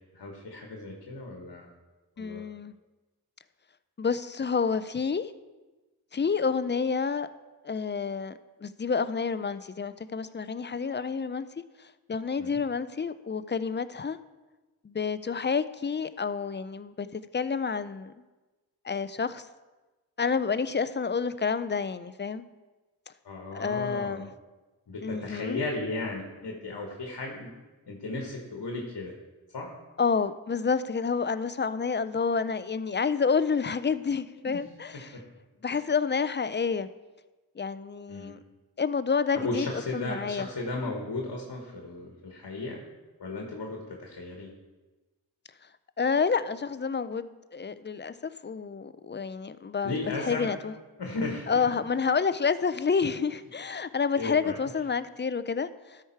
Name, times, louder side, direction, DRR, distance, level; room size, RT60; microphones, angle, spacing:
voice 1, 0.1-1.7 2.2-2.4 12.4-12.6 23.2-24.2 24.9-27.5 27.9-29.1 29.5-29.7 34.4-35.1 35.7-35.8 38.1-38.3 39.3-42.8 43.2-44.5 49.8-50.5 51.0-51.7 54.2-54.6, left 2 dB, 70° left, 1 dB, 1.3 m, -35 dB
voice 2, 2.2-2.7 4.0-5.3 6.1-7.3 7.6-8.3 8.6-11.5 11.8-14.2 14.8-18.1 18.8-19.5 20.2-22.4 23.5-24.3 25.0-25.6 30.0-35.1 35.6-36.9 37.6-38.4 38.8-40.5 46.0-50.7 51.5-56.0, left 5 dB, 30° left, 14 dB, 0.4 m, -29 dB
12.5 x 4.8 x 4.5 m, 1.2 s
cardioid pair, 40°, 40 cm